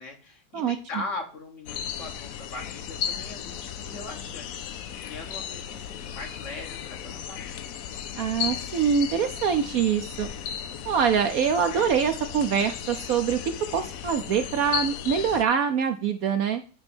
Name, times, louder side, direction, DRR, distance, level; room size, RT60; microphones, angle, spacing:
voice 1, 0.0-4.7 5.0-7.7, left 3 dB, 45° left, 3 dB, 1.5 m, -40 dB
sound 1, 1.7-15.4, left 9 dB, 65° left, 0.9 m, -35 dB
voice 2, 8.2-10.3 10.9-13.4 13.7-16.6, right 7 dB, 65° right, 7 dB, 0.9 m, -24 dB
8.6 x 3.3 x 6.0 m, 0.37 s
omnidirectional pair, 1.9 m